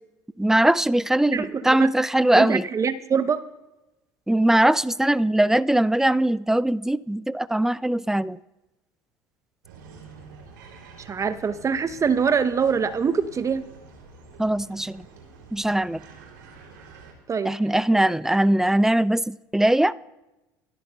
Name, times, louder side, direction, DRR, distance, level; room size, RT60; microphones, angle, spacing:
voice 1, 0.4-2.7 4.3-8.4 14.4-15.1 15.5-16.0 17.4-19.9, right 1 dB, 5° right, 19 dB, 0.4 m, -21 dB
voice 2, 1.3-1.9 2.3-3.4 11.0-13.6 17.3-17.5 17.9-18.0, right 6 dB, 30° right, 12 dB, 0.7 m, -24 dB
sound 1, 9.6-17.1, right 4 dB, 80° right, 3.0 m, -47 dB
25.5 x 12.5 x 2.3 m, 1.0 s
hypercardioid pair, 70°, 11 cm